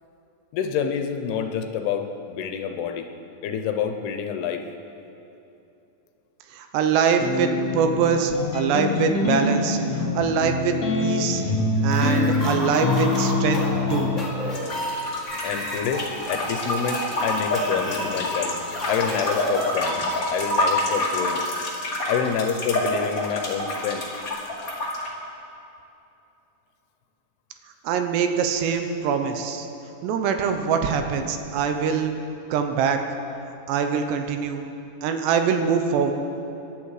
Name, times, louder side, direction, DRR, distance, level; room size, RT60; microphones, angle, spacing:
voice 1, 0.5-3.1 3.4-4.6 15.4-18.5 18.9-20.0 20.3-21.4 22.1-24.0, left 7 dB, 75° left, 6 dB, 2.8 m, -27 dB
voice 2, 6.5-9.8 10.1-11.4 11.8-13.6 13.9-14.1 27.8-29.7 30.0-32.2 32.5-33.0 33.7-34.7 35.0-36.1, right 6 dB, 85° right, 6 dB, 3.2 m, -23 dB
sound 1, 7.2-14.2, left 3 dB, 55° left, 2.1 m, -25 dB
sound 2, 11.8-20.1, equal, 10° left, 3.3 m, -32 dB
sound 3, 14.5-25.1, left 1 dB, 30° left, 1.6 m, -27 dB
25.5 x 11.5 x 4.9 m, 2.9 s
omnidirectional pair, 4.8 m